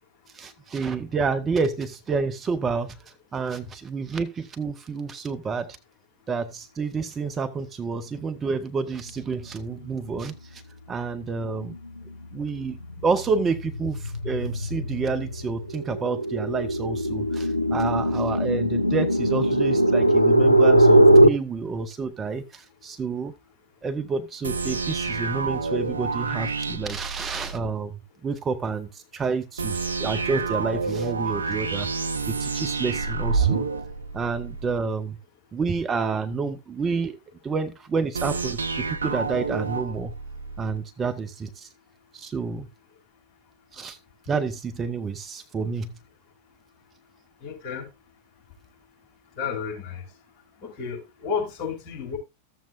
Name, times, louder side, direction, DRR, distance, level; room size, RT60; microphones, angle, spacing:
voice 1, 0.3-3.0 3.3-5.8 6.3-10.6 10.9-11.8 12.3-12.8 13.0-23.3 23.8-31.9 32.3-33.7 34.1-35.2 35.5-37.2 37.4-40.1 40.6-41.7 42.1-42.7 43.7-44.0 44.3-45.9, right 4 dB, 20° right, 0.8 m, -29 dB
sound 1, 11.6-12.0 12.4-21.3, right 1 dB, 90° left, 0.5 m, -20 dB
sound 2, 24.4-27.7 29.6-34.8 38.1-40.8, right 4 dB, 75° right, 0.5 m, -29 dB
voice 2, 47.4-47.9 49.4-50.1 50.6-52.2, left 6 dB, 35° left, 4.9 m, -31 dB
14.0 x 7.4 x 2.4 m
figure-of-eight pair, 90°, 0 cm